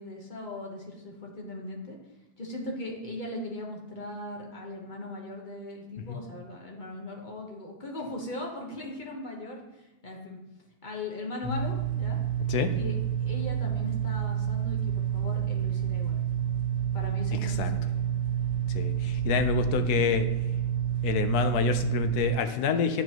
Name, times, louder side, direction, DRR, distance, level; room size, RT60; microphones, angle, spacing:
voice 1, 0.0-2.0 2.4-10.4 10.8-12.2 12.7-16.2 16.9-18.0 19.2-20.0, left 1 dB, 30° left, -1 dB, 1.2 m, -39 dB
sound 1, 11.4-22.3, right 9 dB, 45° right, 2.1 m, -29 dB
voice 2, 18.7-20.3 21.0-23.0, left 7 dB, 70° left, 8 dB, 1.2 m, -27 dB
8.5 x 7.3 x 3.0 m, 0.99 s
omnidirectional pair, 1.8 m